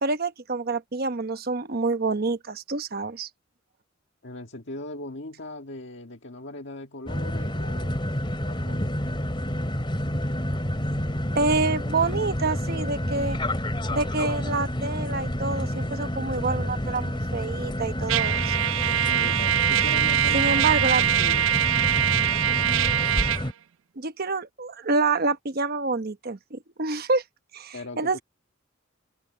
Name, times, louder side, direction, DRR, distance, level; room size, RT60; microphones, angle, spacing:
voice 1, 0.0-3.3 11.3-13.4 13.9-18.6 20.3-21.0 24.0-27.2 27.5-28.2, right 3 dB, 50° right, 1.0 m, -27 dB
voice 2, 4.2-7.9 8.4-8.9 18.9-21.5 27.7-28.2, left 2 dB, 65° left, 1.7 m, -39 dB
sound 1, 7.1-23.5, equal, 25° left, 2.5 m, -29 dB
Trumpet, 18.1-23.4, right 12 dB, 85° right, 0.4 m, -23 dB
open air
head